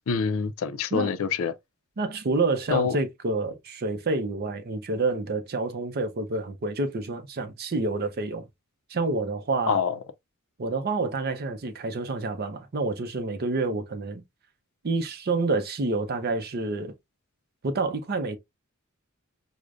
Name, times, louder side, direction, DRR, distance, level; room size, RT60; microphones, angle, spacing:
voice 1, 0.0-1.5 2.7-3.0 9.7-10.0, left 6 dB, 70° left, 0.4 m, -26 dB
voice 2, 2.0-8.4 8.9-9.8 10.6-14.2 14.8-16.9 17.6-18.4, right 3 dB, 45° right, 0.6 m, -28 dB
4.8 x 2.1 x 2.4 m
head